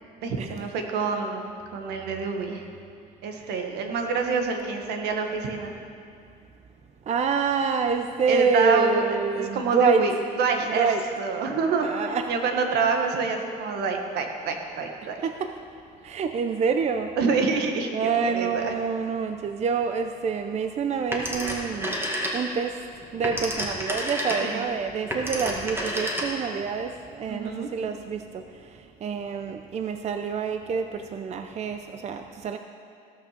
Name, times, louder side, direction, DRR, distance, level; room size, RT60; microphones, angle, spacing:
voice 1, 0.2-1.4 1.7-2.6 3.2-5.7 8.3-9.0 9.3-10.1 10.4-10.9 11.2-11.9 12.3-15.2 17.2-18.7 24.4-24.7 27.3-27.7, right 4 dB, 80° right, 4 dB, 1.5 m, -26 dB
voice 2, 7.1-10.1 10.7-11.0 11.8-12.3 15.2-15.5 16.0-17.1 17.9-22.0 22.3-22.8 23.1-28.4 29.0-32.6, right 5 dB, 40° right, 7 dB, 0.6 m, -27 dB
Telephone, 21.1-22.7 23.0-26.6, equal, 15° right, 1.9 m, -30 dB
16.5 x 6.1 x 6.7 m, 2.5 s
cardioid pair, 110°, 17 cm